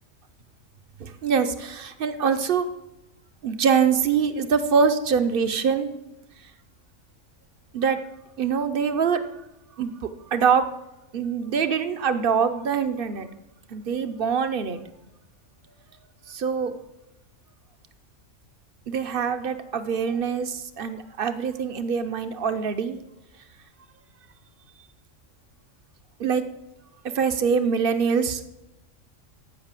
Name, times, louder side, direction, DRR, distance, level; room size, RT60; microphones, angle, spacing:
voice 1, 1.0-2.7 3.4-6.0 7.7-8.0 8.4-9.3 9.8-10.7 11.1-13.3 13.7-14.8 16.3-16.7 18.9-23.0 26.2-26.5 27.1-28.4, right 6 dB, 50° right, 10 dB, 0.9 m, -24 dB
13.5 x 5.8 x 7.5 m, 0.93 s
omnidirectional pair, 1.4 m